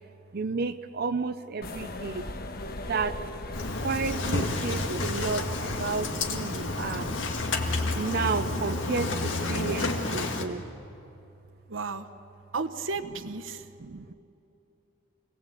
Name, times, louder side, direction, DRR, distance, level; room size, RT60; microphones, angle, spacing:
voice 1, 0.3-2.2 2.9-3.2 3.8-7.1 7.9-10.6 13.8-14.1, right 4 dB, 55° right, 9 dB, 0.6 m, -32 dB
sound 1, 1.6-8.6, left 1 dB, 50° left, 1.2 m, -40 dB
Engine starting, 3.5-10.4, left 2 dB, 75° left, 2.0 m, -30 dB
voice 2, 11.7-12.1 12.5-13.6, right 4 dB, 80° right, 9 dB, 1.1 m, -33 dB
28.0 x 18.5 x 8.3 m, 2.8 s
head